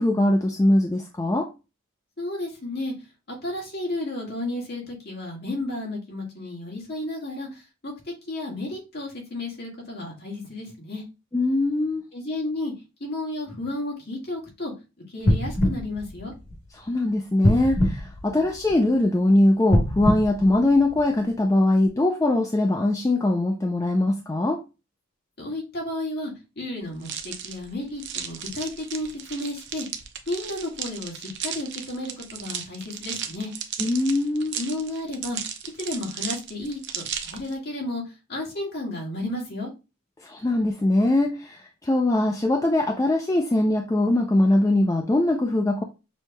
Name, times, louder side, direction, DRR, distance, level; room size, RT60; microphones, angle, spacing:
voice 1, 0.0-1.5 11.3-12.0 16.8-24.6 33.8-34.6 40.2-45.8, left 1 dB, 15° left, 0.3 m, -22 dB
voice 2, 2.2-2.9 3.3-11.0 12.1-12.7 13.0-14.7 15.1-16.3 25.4-29.9 30.3-33.5 34.5-35.4 35.8-39.7, left 1 dB, 50° left, 1.7 m, -32 dB
sound 1, 15.2-16.9 17.4-19.0 19.6-21.3 21.9-22.0, left 1 dB, 80° left, 1.3 m, -24 dB
sound 2, 27.0-37.5, right 8 dB, 55° right, 0.5 m, -35 dB
6.2 x 2.9 x 2.2 m
head